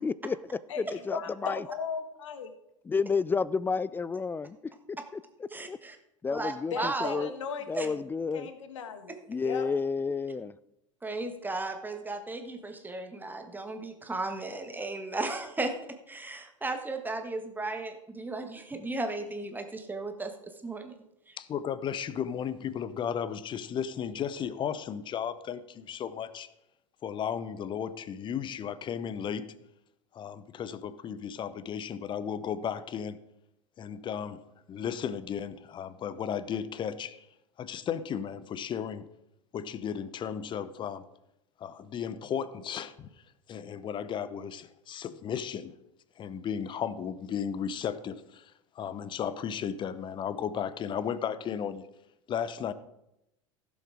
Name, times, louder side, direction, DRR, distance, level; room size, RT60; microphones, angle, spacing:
voice 1, 0.0-0.4 0.8-1.6 2.9-4.6 4.9-5.2 5.7-5.8 6.2-7.3 7.7-8.5 9.3-10.5, left 5 dB, 10° left, 20 dB, 0.4 m, -31 dB
voice 2, 1.1-2.5 6.7-8.0 8.3-9.1 9.4-9.7, left 6 dB, 65° left, 9 dB, 1.4 m, -37 dB
voice 3, 5.5-6.0 6.3-7.3 7.7-7.9 9.1-9.2 11.0-15.7 16.1-20.9 21.3-21.4, right 2 dB, 10° right, 6 dB, 1.5 m, -35 dB
voice 4, 21.4-26.5 27.0-29.5 30.1-33.2 33.8-34.4 34.7-37.3 37.6-39.1 39.5-41.0 41.6-43.1 43.5-45.7 46.2-51.9 52.3-52.7, left 8 dB, 30° left, 15 dB, 0.8 m, -35 dB
16.0 x 7.2 x 4.9 m, 0.85 s
figure-of-eight pair, 80°, 17 cm